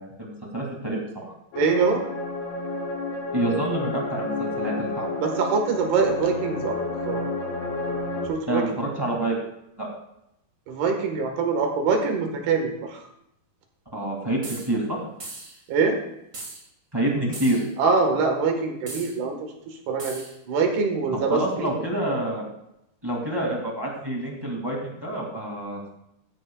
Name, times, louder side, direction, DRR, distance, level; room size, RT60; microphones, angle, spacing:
voice 1, 0.0-1.3 3.3-5.2 8.5-9.3 9.8-9.9 13.9-15.0 16.9-17.6 21.2-22.4 23.0-25.9, right 1 dB, 10° right, -2 dB, 1.8 m, -27 dB
sound 1, 1.5-8.3, left 2 dB, 65° left, 3.7 m, -30 dB
voice 2, 1.6-2.0 5.2-6.8 7.1-7.2 8.3-8.7 10.7-13.1 15.7-16.0 17.8-21.7, right 4 dB, 80° right, 3 dB, 3.7 m, -24 dB
sound 2, 14.4-14.7 15.2-15.6 16.3-16.6 17.3-17.7 18.9-19.2 20.0-20.4, right 2 dB, 25° right, 1.7 m, -38 dB
15.0 x 13.0 x 2.4 m, 0.82 s
omnidirectional pair, 4.5 m